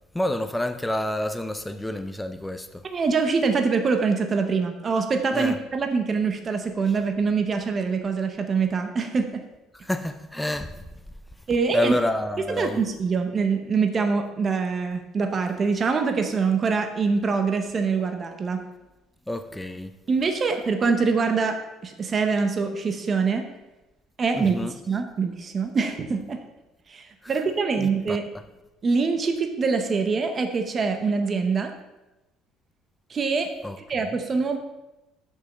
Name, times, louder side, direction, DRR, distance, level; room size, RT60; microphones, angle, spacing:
voice 1, 0.1-2.8 5.3-5.6 9.8-10.8 11.7-12.8 19.3-19.9 24.4-24.7 27.2-27.3 27.8-28.2 33.6-33.8, left 1 dB, 5° left, 0.4 m, -28 dB
voice 2, 2.9-9.4 11.5-11.9 12.6-18.6 20.1-23.4 24.2-24.6 24.9-26.4 26.9-28.2 28.8-31.7 33.1-33.5 33.9-34.6, right 4 dB, 25° right, 0.7 m, -24 dB
6.8 x 5.5 x 6.1 m
cardioid pair, 160°, 0 cm